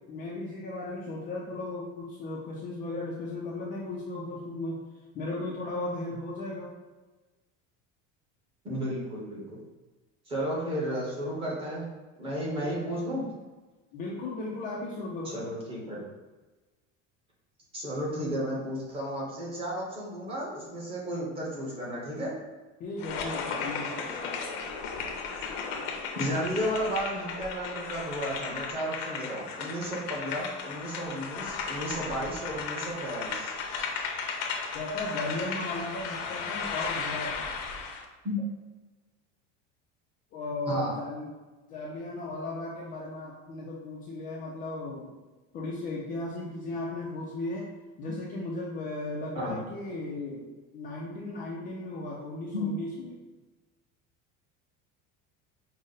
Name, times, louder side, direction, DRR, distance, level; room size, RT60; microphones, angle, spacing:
voice 1, 0.1-4.8 5.1-6.7 12.6-12.9 13.9-15.5 22.8-24.1 34.7-37.5 40.3-41.3 41.7-45.1 45.5-47.7 48.0-53.2, left 2 dB, 30° left, -4 dB, 0.4 m, -36 dB
voice 2, 8.6-9.6 10.3-11.8 12.2-13.3 15.3-16.0 17.7-22.3 26.2-33.5 38.2-38.4 40.7-40.9 49.3-49.6 52.5-52.6, equal, 20° right, -4 dB, 0.9 m, -33 dB
sound 1, 23.0-38.0, left 5 dB, 60° left, 0.7 m, -35 dB
5.2 x 2.0 x 3.9 m, 1.2 s
cardioid pair, 180°, 31 cm